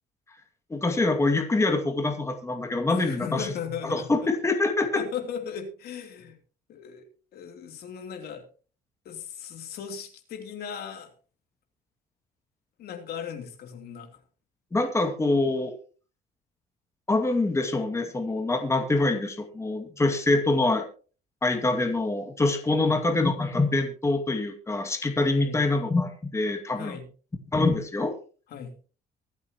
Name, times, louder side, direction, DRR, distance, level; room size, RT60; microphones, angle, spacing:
voice 1, 0.7-3.5 3.8-5.0 14.7-15.7 17.1-20.9 21.4-27.0 27.5-28.1, left 2 dB, 15° left, 4 dB, 2.2 m, -25 dB
voice 2, 2.9-4.3 4.9-6.4 6.7-7.1 7.3-8.4 9.0-11.1 12.8-14.2 22.7-23.0 25.4-25.6 26.8-27.1 28.5-28.8, left 7 dB, 70° left, 5 dB, 3.1 m, -37 dB
24.0 x 8.3 x 3.0 m, 0.38 s
cardioid pair, 110°, 17 cm